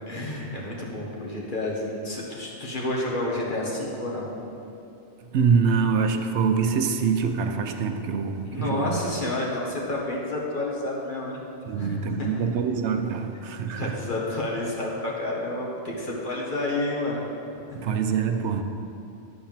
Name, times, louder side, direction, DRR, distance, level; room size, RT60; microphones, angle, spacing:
voice 1, 0.1-4.3 8.4-11.4 11.8-12.4 13.8-17.2 17.5-17.8, left 2 dB, 45° left, -3 dB, 1.6 m, -30 dB
voice 2, 5.3-9.0 11.7-14.0 17.7-18.6, right 6 dB, 75° right, 6 dB, 0.9 m, -25 dB
10.5 x 4.4 x 7.2 m, 2.7 s
omnidirectional pair, 1.2 m